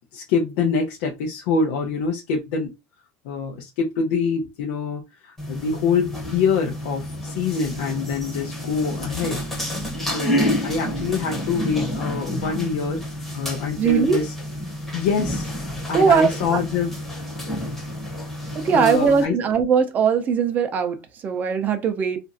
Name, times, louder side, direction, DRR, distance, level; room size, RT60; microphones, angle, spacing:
voice 1, 0.1-2.7 3.2-9.4 10.0-13.0 13.3-14.3 14.9-15.5 15.9-17.0 18.7-19.4, left 5 dB, 70° left, 0.6 m, -25 dB
sound 1, 5.4-19.3, equal, 5° left, 0.8 m, -29 dB
voice 2, 13.8-14.2 15.9-16.6 18.5-22.2, right 6 dB, 25° right, 0.5 m, -20 dB
2.9 x 2.5 x 2.5 m
cardioid pair, 175°, 7 cm